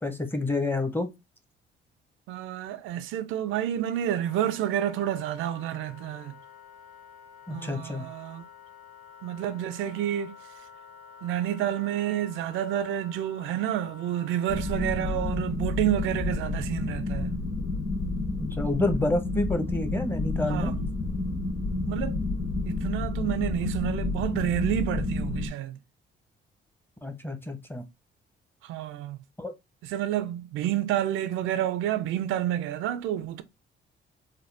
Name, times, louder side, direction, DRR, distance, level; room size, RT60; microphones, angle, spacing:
voice 1, 0.0-1.1 7.5-8.0 18.4-20.7 27.0-27.8 29.4-29.5, left 2 dB, 10° left, 0.8 m, -29 dB
voice 2, 2.3-6.4 7.5-8.5 9.2-10.4 11.2-17.3 20.5-20.9 21.9-22.2 22.6-25.8 28.6-29.2 29.8-33.4, right 11 dB, 90° right, 0.4 m, -29 dB
Wind instrument woodwind instrument, 4.1-15.3, left 5 dB, 90° left, 1.5 m, -49 dB
sound 1, 14.5-25.5, left 3 dB, 55° left, 2.1 m, -30 dB
3.8 x 2.2 x 3.3 m
cardioid pair, 90°, 20 cm